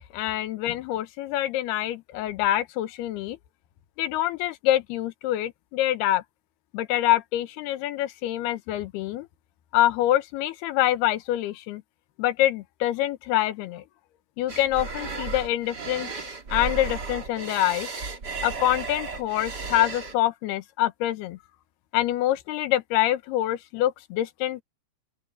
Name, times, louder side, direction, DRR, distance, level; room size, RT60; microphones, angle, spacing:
voice 1, 0.1-3.4 4.0-6.2 6.7-9.3 9.7-11.8 12.2-13.8 14.4-16.1 16.5-17.9 18.4-21.4 21.9-24.6, left 14 dB, 80° left, 3.1 m, -25 dB
sound 1, 14.5-20.1, right 4 dB, 30° right, 2.7 m, -34 dB
open air
omnidirectional pair, 4.6 m